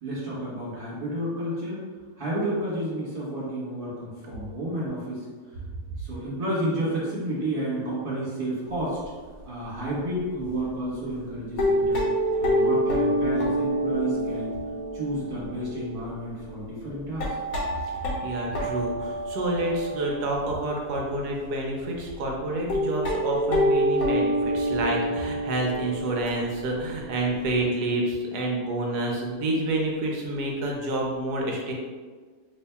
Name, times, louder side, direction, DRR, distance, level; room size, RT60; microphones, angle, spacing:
voice 1, 0.0-1.8 2.2-5.3 6.0-9.0 9.4-12.0 12.4-14.5 14.9-17.3, right 1 dB, 35° right, -9 dB, 1.5 m, -31 dB
sound 1, 8.7-9.0 9.4-9.5 9.9-10.0 10.5-10.6 11.3-21.3 21.9-22.0 22.2-22.3 22.7-27.6, equal, 65° left, 1.0 m, -28 dB
voice 2, 18.2-31.7, right 1 dB, 70° right, -1 dB, 1.1 m, -28 dB
2.9 x 2.7 x 3.4 m, 1.5 s
omnidirectional pair, 1.9 m